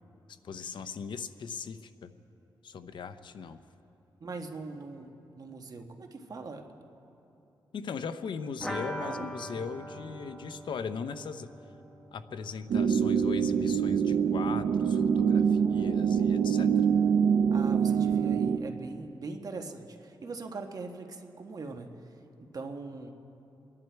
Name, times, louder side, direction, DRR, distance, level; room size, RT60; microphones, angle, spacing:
voice 1, 0.4-2.1 2.6-3.6 7.7-11.5 12.1-16.9, left 6 dB, 75° left, 11 dB, 0.7 m, -39 dB
voice 2, 4.2-6.6 9.0-9.3 17.5-21.9 22.4-23.1, right 3 dB, 50° right, 4 dB, 1.4 m, -41 dB
sound 1, 8.6-14.2 14.5-14.6 14.9-15.0, equal, 5° left, 1.4 m, -42 dB
sound 2, 12.7-18.6, right 7 dB, 85° right, 0.6 m, -25 dB
28.5 x 11.0 x 4.6 m, 2.9 s
cardioid pair, 90°, 8 cm